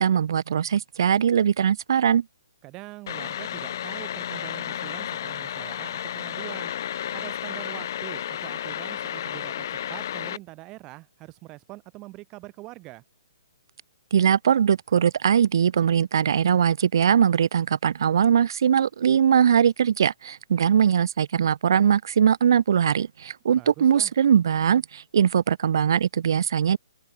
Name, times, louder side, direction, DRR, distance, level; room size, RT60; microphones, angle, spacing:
voice 1, 0.0-2.2 14.1-26.8, right 8 dB, 50° right, 0.6 m, -21 dB
voice 2, 2.6-6.7 7.1-13.0 23.5-24.1, right 21 dB, 20° right, 5.1 m, -43 dB
sound 1, 3.1-10.4, left 10 dB, 40° left, 1.6 m, -32 dB
open air
hypercardioid pair, 170°, 3 cm